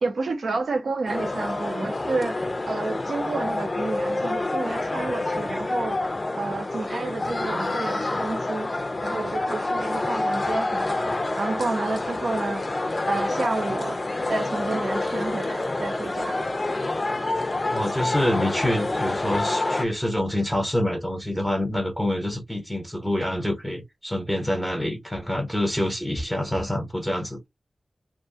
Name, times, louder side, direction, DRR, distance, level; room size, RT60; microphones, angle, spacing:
voice 1, 0.0-6.0 6.4-8.7 9.0-11.0 11.4-12.6 13.1-14.0 14.3-16.4, right 3 dB, 80° right, 0.7 m, -30 dB
sound 1, 1.1-19.8, left 2 dB, 35° left, 0.4 m, -27 dB
voice 2, 17.7-27.5, left 1 dB, 10° left, 0.8 m, -26 dB
2.4 x 2.2 x 2.7 m
wide cardioid pair, 105°, 0 cm